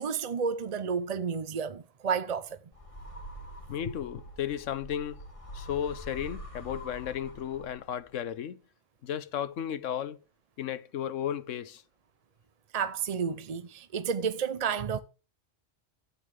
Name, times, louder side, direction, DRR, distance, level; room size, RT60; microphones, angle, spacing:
voice 1, 0.0-2.6 12.7-15.0, right 6 dB, 45° right, 0.5 m, -31 dB
sound 1, 2.7-8.0, equal, 25° left, 1.9 m, -45 dB
voice 2, 3.7-5.2 5.5-8.6 9.0-10.2 10.6-11.8, left 9 dB, 85° left, 1.1 m, -34 dB
12.0 x 8.7 x 3.3 m
omnidirectional pair, 1.3 m